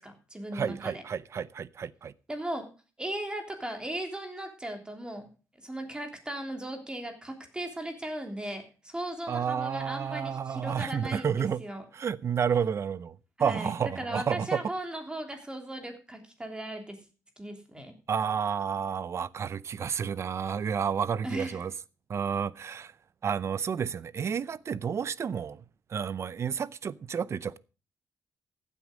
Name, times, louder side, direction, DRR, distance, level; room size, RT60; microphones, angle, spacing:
voice 1, 0.0-1.0 2.3-2.7 3.0-5.3 5.6-11.8 13.4-17.0 17.4-17.9 21.2-21.6, right 1 dB, 15° right, 3.2 m, -37 dB
voice 2, 0.5-2.1 9.3-11.6 11.9-14.6 18.1-21.7 22.1-22.9 23.2-25.6 25.9-27.6, right 7 dB, 50° right, 0.6 m, -31 dB
15.0 x 8.5 x 5.0 m
cardioid pair, 100°, 6 cm